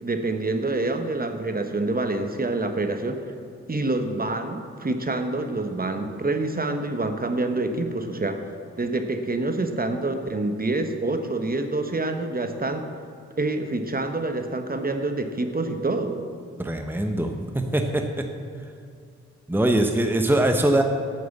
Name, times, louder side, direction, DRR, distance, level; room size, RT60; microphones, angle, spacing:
voice 1, 0.0-3.2 3.7-8.4 8.8-12.9 13.4-16.2, right 2 dB, 30° right, 7 dB, 1.2 m, -27 dB
voice 2, 16.6-18.3 19.5-20.8, right 1 dB, 5° right, 5 dB, 1.0 m, -22 dB
8.5 x 7.9 x 7.3 m, 2.5 s
supercardioid pair, 40°, 29 cm